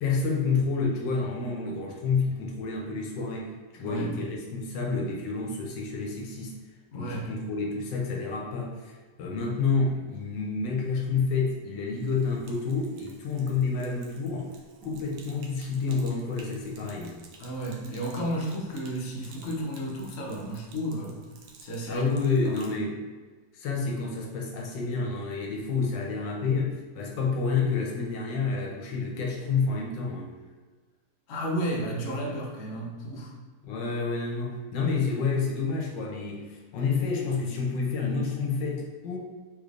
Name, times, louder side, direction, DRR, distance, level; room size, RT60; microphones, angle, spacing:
voice 1, 0.0-6.6 6.9-14.5 14.8-17.2 21.9-23.0 23.5-30.3 33.6-39.2, left 4 dB, 80° left, -1 dB, 1.3 m, -29 dB
voice 2, 3.8-4.1 6.9-7.3 17.4-21.2 21.6-22.1 22.4-22.5 31.3-33.3, right 1 dB, 55° left, -2 dB, 0.8 m, -32 dB
Sink (filling or washing), 11.9-22.8, right 4 dB, 70° right, 1.1 m, -53 dB
3.5 x 3.3 x 2.5 m, 1.4 s
omnidirectional pair, 1.9 m